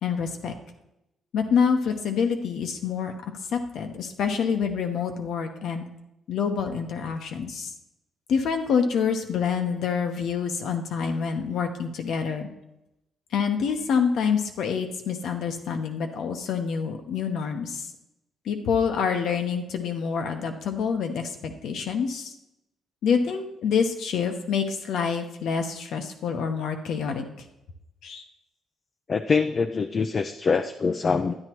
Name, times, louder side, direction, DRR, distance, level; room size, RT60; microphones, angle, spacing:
voice 1, 0.0-0.5 1.3-5.8 6.3-7.7 8.3-12.5 13.3-17.9 18.4-22.3 23.0-27.3 28.0-28.2, left 6 dB, 75° left, 5 dB, 1.0 m, -27 dB
voice 2, 29.1-31.4, left 5 dB, 40° left, 6 dB, 0.4 m, -24 dB
11.0 x 9.7 x 3.0 m, 0.88 s
cardioid pair, 90°, 0 cm